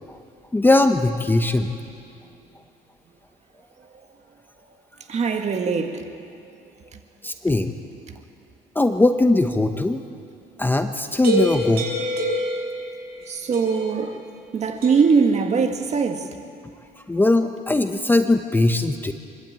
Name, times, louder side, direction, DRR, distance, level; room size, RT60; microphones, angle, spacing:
voice 1, 0.5-1.7 7.2-7.7 8.7-10.0 10.6-11.9 17.1-19.1, left 2 dB, 10° left, 0.8 m, -20 dB
voice 2, 5.1-6.1 6.9-7.0 8.1-8.2 13.3-14.2 14.5-16.3, right 5 dB, 40° right, 1.9 m, -22 dB
sound 1, 11.2-13.2 13.5-14.0 14.8-15.2, equal, 65° right, 5.5 m, -26 dB
25.0 x 12.0 x 8.8 m
cardioid pair, 110°, 17 cm